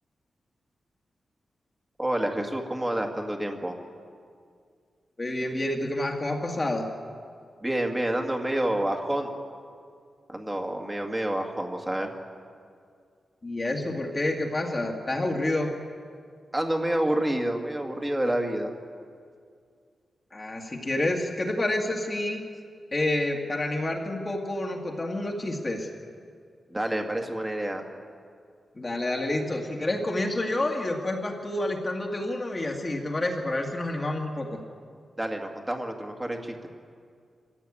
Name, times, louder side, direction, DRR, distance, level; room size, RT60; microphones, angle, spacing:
voice 1, 2.0-3.8 7.6-9.3 10.3-12.1 16.5-18.7 26.7-27.8 35.2-36.7, right 1 dB, 10° right, 2 dB, 2.0 m, -28 dB
voice 2, 5.2-6.9 13.4-15.7 20.3-22.4 22.9-25.9 28.8-34.6, left 1 dB, 25° left, 1 dB, 1.9 m, -28 dB
24.0 x 15.5 x 8.5 m, 2.2 s
wide cardioid pair, 165°, 0 cm